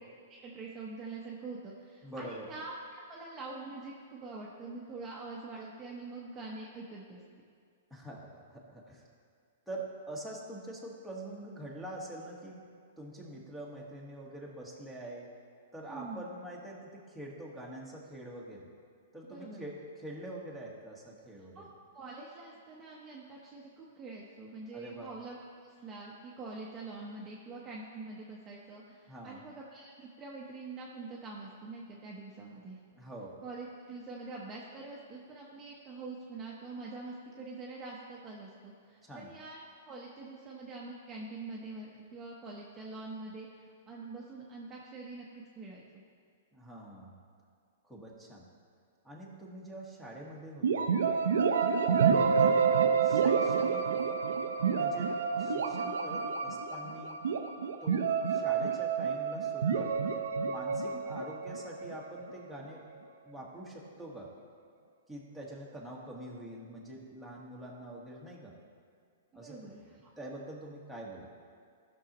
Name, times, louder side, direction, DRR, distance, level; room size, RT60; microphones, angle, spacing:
voice 1, 0.4-7.2 15.9-16.3 19.3-19.6 21.5-21.6 21.9-25.4 25.8-32.8 33.4-45.8 51.7-52.1 69.3-70.1, right 3 dB, 20° right, -4 dB, 0.9 m, -45 dB
voice 2, 2.0-2.5 7.9-9.0 9.7-12.6 13.0-15.3 15.7-18.7 19.1-21.6 24.7-25.1 29.1-29.4 32.9-33.3 39.0-39.3 46.5-47.2 47.8-48.4 49.0-50.9 52.4-52.7 53.0-53.9 54.7-57.2 57.8-59.9 60.4-62.8 63.2-64.3 65.1-68.5 69.3-71.3, right 1 dB, ahead, -3 dB, 1.3 m, -45 dB
sound 1, 50.6-62.3, right 6 dB, 90° right, 0.6 m, -29 dB
15.0 x 6.3 x 2.9 m, 2.2 s
hypercardioid pair, 155°, 0 cm